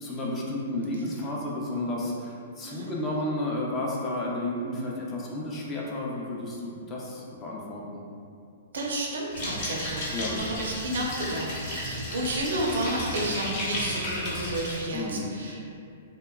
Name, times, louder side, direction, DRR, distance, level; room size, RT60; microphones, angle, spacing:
voice 1, 0.0-8.1 10.1-10.4 14.9-15.3, left 1 dB, 25° left, -4 dB, 0.5 m, -32 dB
voice 2, 8.7-15.8, right 1 dB, 75° right, -2 dB, 0.5 m, -31 dB
sound 1, 9.3-14.8, left 1 dB, 55° left, 0.9 m, -33 dB
2.8 x 2.1 x 2.3 m, 2.4 s
hypercardioid pair, 120°, 0 cm